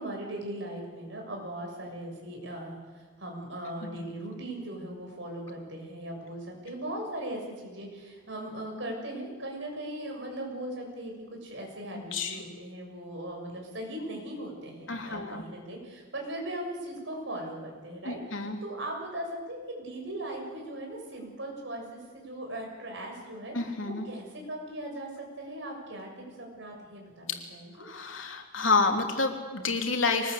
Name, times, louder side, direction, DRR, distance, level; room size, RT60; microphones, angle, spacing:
voice 1, 0.0-11.1 11.4-23.5 23.9-26.1 26.4-27.9, right 1 dB, 65° right, 1 dB, 7.1 m, -39 dB
voice 2, 11.9-12.4 14.9-15.4 18.0-18.6 23.5-24.1 27.8-30.3, left 3 dB, 90° left, 3 dB, 3.1 m, -29 dB
24.0 x 20.0 x 8.4 m, 1.4 s
head